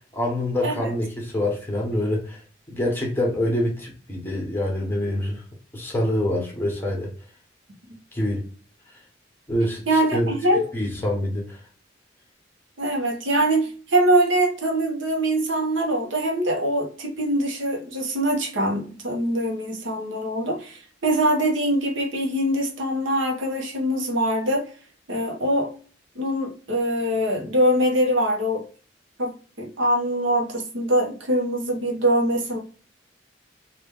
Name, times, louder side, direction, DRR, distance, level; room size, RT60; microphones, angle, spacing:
voice 1, 0.1-2.4 2.7-5.4 5.7-7.1 8.1-8.4 9.5-9.8 10.1-10.3 10.7-11.6, left 1 dB, 10° left, -1 dB, 1.0 m, -25 dB
voice 2, 9.9-10.7 12.8-24.7 25.1-25.7 26.1-28.6 29.2-32.6, right 1 dB, 75° right, 2 dB, 0.9 m, -23 dB
2.9 x 2.5 x 3.5 m, 0.41 s
head